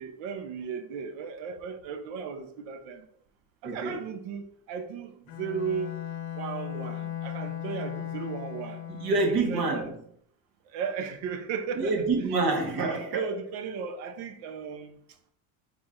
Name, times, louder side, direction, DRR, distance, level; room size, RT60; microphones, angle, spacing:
voice 1, 0.0-3.1 3.6-6.0 6.3-8.8 9.3-9.9 10.7-12.0 13.1-15.0, right 6 dB, 75° right, 0.9 m, -35 dB
voice 2, 3.6-4.1 8.9-10.0 11.7-13.3, right 3 dB, 55° right, 1.4 m, -27 dB
Bowed string instrument, 5.3-9.6, left 11 dB, 65° left, 0.7 m, -37 dB
4.5 x 4.1 x 2.5 m
supercardioid pair, 105°, 46 cm